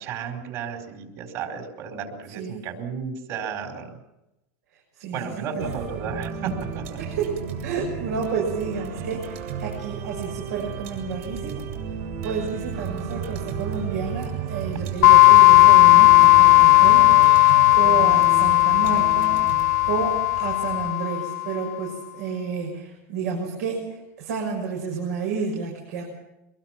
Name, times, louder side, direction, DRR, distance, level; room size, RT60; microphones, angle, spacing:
voice 1, 0.0-3.9 5.1-7.0, right 6 dB, 45° right, 5 dB, 4.6 m, -33 dB
voice 2, 2.3-2.7 4.9-5.7 7.0-11.6 12.2-17.1 17.5-19.4 19.8-26.0, right 5 dB, 85° right, 0 dB, 6.6 m, -30 dB
sound 1, 5.6-20.9, right 7 dB, 65° right, 6.7 m, -33 dB
sound 2, 15.0-21.5, left 20 dB, 80° left, 0.9 m, -15 dB
24.0 x 22.5 x 6.0 m, 0.92 s
supercardioid pair, 160°, 8 cm